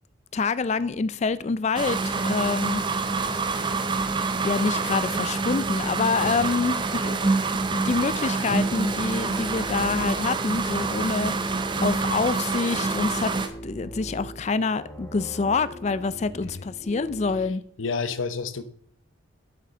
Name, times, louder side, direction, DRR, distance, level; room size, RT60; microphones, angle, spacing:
voice 1, 0.3-2.8 4.4-13.3 13.6-17.6, left 4 dB, 35° left, 0.4 m, -27 dB
sound 1, 1.8-13.5, right 4 dB, 25° right, 0.6 m, -26 dB
sound 2, 7.5-17.5, equal, 10° left, 1.2 m, -41 dB
voice 2, 17.8-18.6, left 4 dB, 85° left, 0.7 m, -30 dB
7.6 x 6.5 x 5.5 m
head